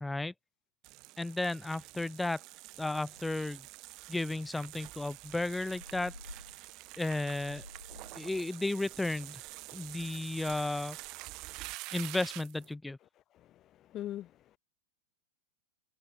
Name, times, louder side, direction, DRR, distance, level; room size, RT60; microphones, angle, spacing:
voice 1, 0.0-0.3 1.2-2.4 2.8-3.6 4.1-6.1 7.0-7.6 8.1-9.4 9.7-11.0 11.9-13.0, left 2 dB, 5° left, 0.9 m, -33 dB
sound 1, 0.8-12.7, right 22 dB, 40° right, 1.5 m, -47 dB
sound 2, 1.9-2.2 2.5-2.6 2.9-3.6 4.1-8.3, left 1 dB, 85° left, 7.6 m, -53 dB
voice 2, 13.3-14.6, left 13 dB, 30° left, 0.5 m, -43 dB
figure-of-eight pair, 90°, 0 cm